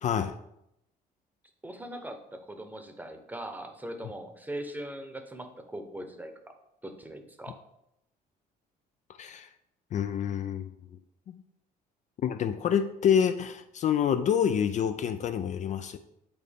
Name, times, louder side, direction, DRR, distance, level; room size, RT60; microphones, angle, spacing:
voice 1, 0.0-0.3 9.2-9.5 9.9-10.7 11.3-11.4 12.2-16.0, left 8 dB, 45° left, 9 dB, 0.4 m, -27 dB
voice 2, 1.6-5.5 5.7-6.5 6.8-7.6, right 1 dB, 10° right, 6 dB, 0.8 m, -40 dB
8.6 x 3.9 x 3.5 m, 0.81 s
cardioid pair, 110°, 17 cm